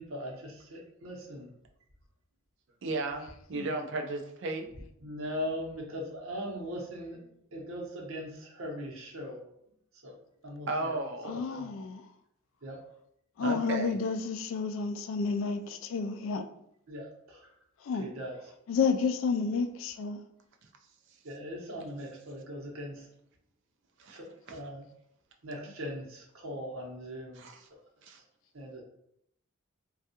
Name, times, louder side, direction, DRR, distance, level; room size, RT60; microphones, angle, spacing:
voice 1, 0.0-1.5 5.0-9.4 10.0-10.2 10.4-11.0 11.3-11.7 12.6-12.8 16.9-17.5 18.0-18.4 21.2-23.1 24.1-24.8 25.4-27.5 28.5-28.8, equal, 80° right, 0.9 m, -40 dB
voice 2, 2.8-4.7 10.7-11.4 13.4-14.0 24.0-24.1 27.3-27.7 28.0-28.2, right 2 dB, 60° right, 0.5 m, -34 dB
voice 3, 11.2-12.0 13.4-16.5 17.8-18.1 18.7-20.2, left 5 dB, 70° left, 0.3 m, -30 dB
3.4 x 2.3 x 2.8 m
head